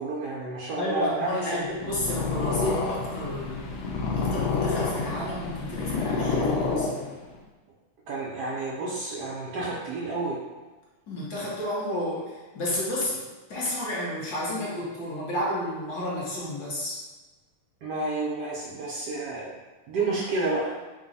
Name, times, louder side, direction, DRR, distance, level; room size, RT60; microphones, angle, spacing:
voice 1, 0.0-1.5 8.1-10.4 17.8-19.5 19.9-20.8, right 2 dB, 85° right, -4 dB, 0.9 m, -30 dB
voice 2, 0.8-3.7 4.2-7.1 11.1-13.2 13.5-17.0, left 1 dB, 55° left, -6 dB, 1.4 m, -31 dB
Purr, 1.7-7.4, left 4 dB, 85° left, 0.9 m, -28 dB
3.9 x 2.3 x 3.9 m, 1.2 s
omnidirectional pair, 2.4 m